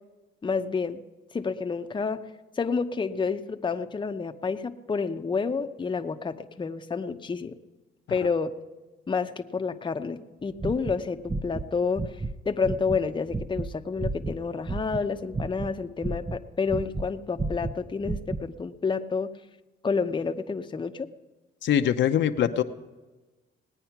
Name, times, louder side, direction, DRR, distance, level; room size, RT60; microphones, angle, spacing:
voice 1, 0.4-1.0 1.3-2.2 2.6-7.5 8.1-8.5 9.1-12.1 12.4-19.3 19.8-21.1, left 5 dB, 25° left, 6 dB, 0.7 m, -29 dB
sound 1, 10.5-11.7 12.0-12.3 12.6-15.1 15.3-17.1 17.4-18.4, right 3 dB, 15° right, 0.6 m, -32 dB
voice 2, 21.6-22.6, left 9 dB, 65° left, 7 dB, 0.7 m, -23 dB
18.5 x 9.1 x 5.9 m, 1.2 s
cardioid pair, 90°, 20 cm